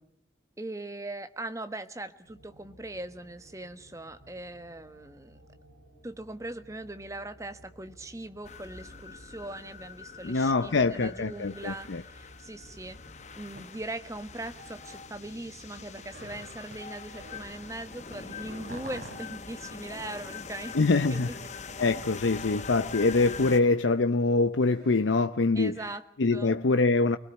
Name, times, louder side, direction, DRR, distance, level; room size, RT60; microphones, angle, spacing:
voice 1, 0.6-5.4 6.0-13.0 13.3-21.3 25.5-26.0 26.3-26.6, right 2 dB, 15° right, 1.3 m, -40 dB
sound 1, 2.2-18.0, right 1 dB, 80° right, 6.3 m, -57 dB
sound 2, 8.4-23.6, left 5 dB, 40° left, 0.9 m, -44 dB
voice 2, 10.2-12.0 20.7-21.3 21.8-25.7 26.2-27.2, left 3 dB, 85° left, 0.7 m, -24 dB
sound 3, 13.5-15.3 15.6-17.7 18.0-25.1, right 1 dB, 60° right, 6.5 m, -50 dB
29.5 x 21.0 x 4.4 m
head